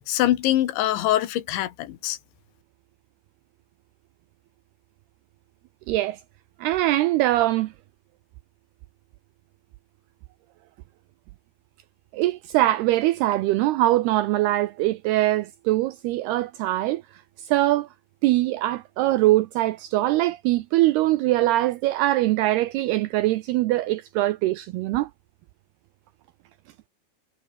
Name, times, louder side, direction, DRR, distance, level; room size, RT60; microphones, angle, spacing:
voice 1, 0.1-2.2, left 13 dB, 75° left, 3.8 m, -23 dB
voice 2, 5.9-6.2 6.6-7.7 12.1-17.0 17.4-17.9 18.2-25.1, right 16 dB, 85° right, 2.3 m, -22 dB
omnidirectional pair, 5.4 m